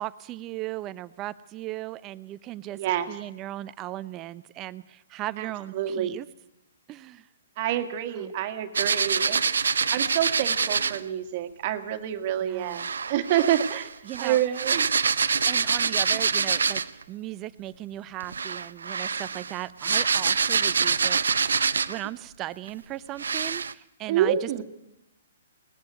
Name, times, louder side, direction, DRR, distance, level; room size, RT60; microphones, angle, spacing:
voice 1, 0.0-2.8 3.1-6.3 6.9-7.3 8.1-8.3 12.4-12.9 14.0-14.4 15.5-16.8 17.1-24.6, right 15 dB, 25° right, 15 dB, 0.6 m, -37 dB
voice 2, 2.8-3.1 5.4-5.5 5.7-6.2 7.6-9.4 9.9-13.9 14.2-14.9 24.1-24.6, right 11 dB, 45° right, 8 dB, 1.7 m, -27 dB
sound 1, 8.7-11.0 12.7-17.0 18.2-22.1 22.7-22.8 23.2-23.7, right 5 dB, 80° right, 0.6 m, -25 dB
19.0 x 15.0 x 9.3 m, 0.86 s
hypercardioid pair, 135°, 0 cm